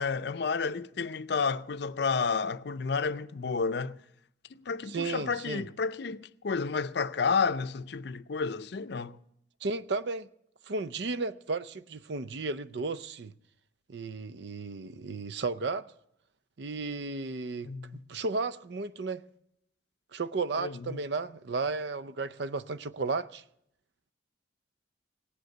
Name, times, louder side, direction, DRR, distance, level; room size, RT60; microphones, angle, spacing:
voice 1, 0.0-4.0 4.5-9.2 17.6-18.0 20.6-21.0, left 5 dB, 60° left, 0.5 m, -31 dB
voice 2, 4.9-5.7 9.6-10.3 10.7-13.3 13.9-15.9 16.6-17.7 18.1-19.2 20.1-23.4, right 3 dB, 65° right, 0.5 m, -34 dB
18.0 x 8.0 x 7.8 m
head